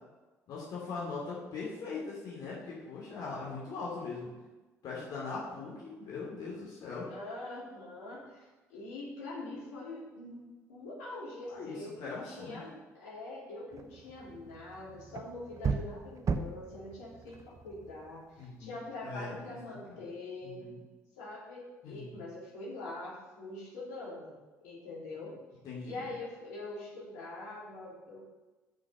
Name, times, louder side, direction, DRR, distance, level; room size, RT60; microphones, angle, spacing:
voice 1, 0.5-4.3 4.8-7.1 11.5-12.6 18.4-18.7 19.0-19.4 19.7-20.0 20.4-20.8 21.8-22.2 25.6-26.1, left 4 dB, 55° left, -5 dB, 2.9 m, -40 dB
voice 2, 7.1-20.6 21.2-24.3 24.6-25.3 25.8-28.2, left 2 dB, 75° left, -6 dB, 3.5 m, -44 dB
sound 1, 13.7-18.6, right 5 dB, 40° right, 0.8 m, -38 dB
7.1 x 6.1 x 7.6 m, 1.2 s
hypercardioid pair, 55°, 8 cm